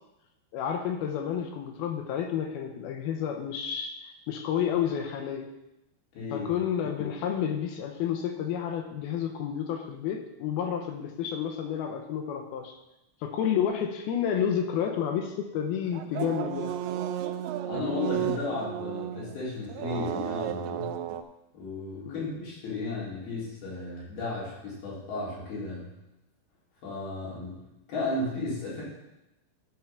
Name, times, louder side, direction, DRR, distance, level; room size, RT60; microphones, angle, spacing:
voice 1, 0.5-5.5 6.3-12.8 13.2-16.8 22.1-22.3, left 8 dB, 75° left, 4 dB, 2.4 m, -30 dB
voice 2, 6.1-6.5 17.7-21.0 21.5-25.9 26.8-28.8, left 3 dB, 60° left, -8 dB, 5.5 m, -34 dB
sound 1, 15.9-21.2, right 11 dB, 85° right, 2.3 m, -33 dB
13.5 x 4.6 x 5.7 m, 0.92 s
omnidirectional pair, 5.1 m